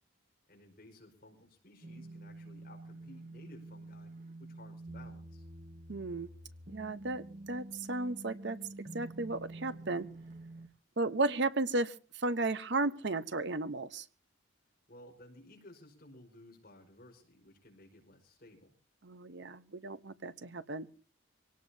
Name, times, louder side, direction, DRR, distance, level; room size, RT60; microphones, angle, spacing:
voice 1, 0.5-4.1 4.4-5.5 14.9-18.7, left 1 dB, 45° left, 1 dB, 5.0 m, -56 dB
sound 1, 1.8-10.7, right 2 dB, 35° right, 1.4 m, -48 dB
voice 2, 5.9-6.3 6.7-8.6 8.9-10.1 11.0-14.0 19.0-20.9, right 2 dB, 55° right, 13 dB, 0.9 m, -34 dB
25.0 x 18.0 x 2.8 m, 0.36 s
head